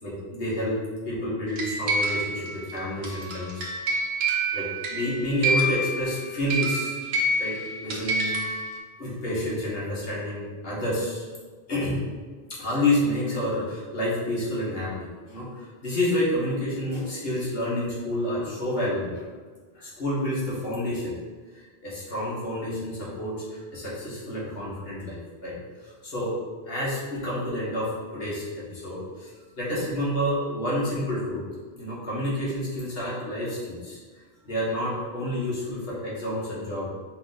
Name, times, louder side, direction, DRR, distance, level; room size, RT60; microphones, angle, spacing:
voice 1, 0.0-0.8 1.0-3.7 4.5-7.0 7.4-7.6 7.8-8.6 9.0-11.2 11.7-12.0 12.5-19.2 19.7-21.2 21.5-25.6 25.8-26.4 26.7-29.3 29.6-31.4 31.7-34.0 34.4-36.9, left 1 dB, 60° left, -7 dB, 1.6 m, -29 dB
sound 1, 1.6-8.8, right 2 dB, 70° right, 0.9 m, -28 dB
4.8 x 2.6 x 3.9 m, 1.5 s
omnidirectional pair, 1.1 m